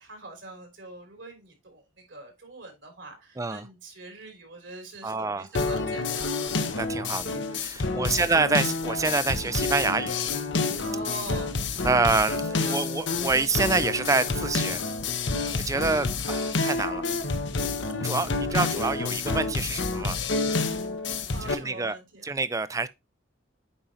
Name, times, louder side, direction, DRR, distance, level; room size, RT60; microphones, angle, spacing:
voice 1, 0.0-1.8 2.1-6.5 7.8-8.2 10.8-11.6 12.3-12.8 16.1-16.3 21.3-22.3, right 2 dB, 65° right, 3.4 m, -43 dB
voice 2, 3.4-3.7 5.0-5.5 6.8-10.2 11.8-14.8 15.6-17.1 18.0-20.2 21.4-22.0 22.2-22.9, right 3 dB, 15° right, 0.4 m, -27 dB
sound 1, 5.5-21.5, left 3 dB, 65° left, 1.0 m, -28 dB
8.8 x 5.3 x 2.9 m
head